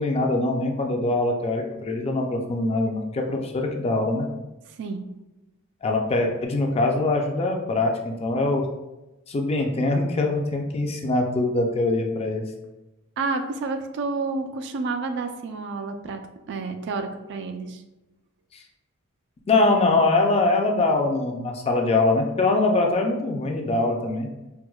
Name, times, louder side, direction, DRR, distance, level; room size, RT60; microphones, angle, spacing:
voice 1, 0.0-4.3 5.8-8.6 9.3-12.4 19.5-24.3, left 2 dB, 30° left, 2 dB, 0.4 m, -23 dB
voice 2, 13.2-16.2 16.5-17.8, right 3 dB, 55° right, 7 dB, 0.3 m, -29 dB
4.5 x 2.1 x 2.3 m, 1.0 s
head